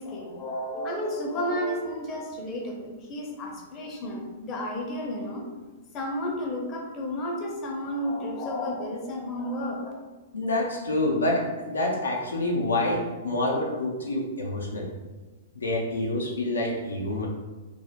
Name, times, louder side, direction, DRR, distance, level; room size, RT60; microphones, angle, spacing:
voice 1, 0.0-5.5 5.9-9.9, left 1 dB, 30° left, -1 dB, 0.5 m, -32 dB
voice 2, 10.3-14.9 15.5-17.3, left 1 dB, 90° left, -2 dB, 0.4 m, -27 dB
2.3 x 2.0 x 2.8 m, 1.2 s
hypercardioid pair, 115°, 0 cm